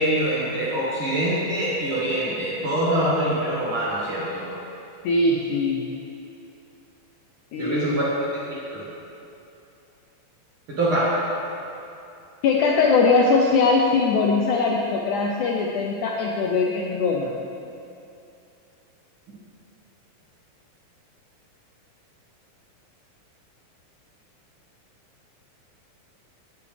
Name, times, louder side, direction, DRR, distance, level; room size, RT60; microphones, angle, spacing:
voice 1, 0.0-4.5 7.6-8.0 8.4-8.8 10.7-11.1, right 1 dB, 50° right, -7 dB, 1.7 m, -24 dB
voice 2, 5.0-5.8 7.5-8.0 12.4-17.3, left 4 dB, 80° left, -1 dB, 1.8 m, -21 dB
16.5 x 7.0 x 3.3 m, 2.7 s
omnidirectional pair, 4.1 m